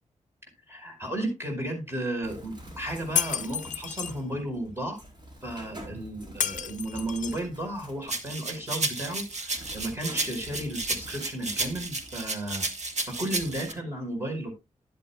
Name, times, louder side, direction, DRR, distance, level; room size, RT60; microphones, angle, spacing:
voice 1, 0.7-5.0 5.4-12.7 13.1-14.5, right 1 dB, 20° right, 3 dB, 4.9 m, -34 dB
Bird, 2.2-13.7, right 1 dB, 35° right, 4.6 m, -47 dB
Shatter, 3.2-4.1 6.4-7.5, left 8 dB, 75° left, 0.6 m, -30 dB
sound 1, 8.1-13.7, right 2 dB, 60° right, 1.4 m, -32 dB
12.0 x 11.0 x 2.3 m, 0.22 s
wide cardioid pair, 105°, 13 cm